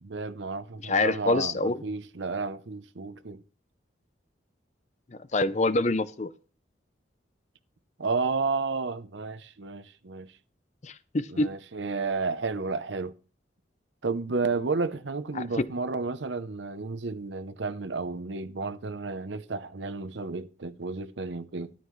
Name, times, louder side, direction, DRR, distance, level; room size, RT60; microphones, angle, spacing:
voice 1, 0.0-3.4 8.0-10.3 11.3-13.1 14.0-21.7, right 4 dB, 70° right, 0.7 m, -32 dB
voice 2, 0.9-1.8 5.3-6.3 10.8-11.5 15.4-15.6, left 2 dB, 35° left, 0.5 m, -26 dB
13.0 x 11.0 x 3.2 m
head